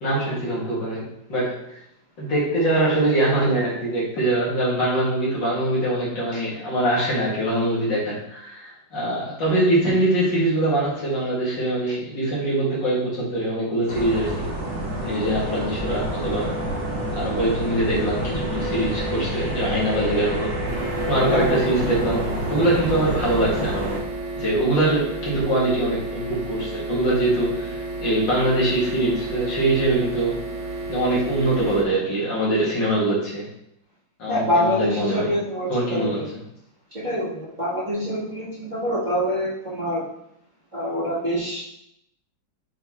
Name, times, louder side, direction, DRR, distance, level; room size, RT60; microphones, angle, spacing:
voice 1, 0.0-1.6 2.2-14.5 15.0-16.5 17.1-20.6 21.1-24.0 24.4-30.4 30.9-33.5 34.2-35.4 35.7-36.4, right 1 dB, 60° left, -6 dB, 2.5 m, -23 dB
sound 1, 13.9-24.0, right 1 dB, 60° right, 2.1 m, -28 dB
sound 2, 20.7-31.8, right 2 dB, 90° right, 1.6 m, -32 dB
voice 2, 21.3-21.8 34.3-36.3 36.9-40.1 40.7-41.6, equal, 25° right, -10 dB, 1.7 m, -25 dB
7.8 x 3.9 x 3.0 m, 0.77 s
omnidirectional pair, 2.2 m